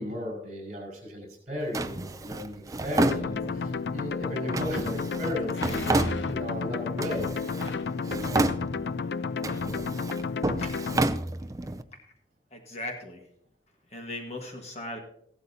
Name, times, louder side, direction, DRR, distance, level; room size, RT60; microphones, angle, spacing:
voice 1, 0.0-7.3, left 1 dB, 40° right, 2 dB, 5.3 m, -35 dB
Drawer open or close, 1.7-3.8 4.5-6.6 7.0-7.8 8.0-9.0 9.4-11.8, right 2 dB, 20° right, 0.4 m, -30 dB
sound 1, 3.0-11.0, left 5 dB, 65° left, 0.4 m, -32 dB
sound 2, 4.5-4.6 5.5-6.5 7.6-8.0 9.0-9.2 9.4-9.8 10.3-10.4, left 4 dB, 85° left, 0.8 m, -41 dB
voice 2, 10.6-11.1 11.9-12.1 12.5-13.2 13.9-15.0, left 1 dB, 35° left, 2 dB, 1.5 m, -39 dB
15.5 x 12.0 x 2.8 m, 0.71 s
head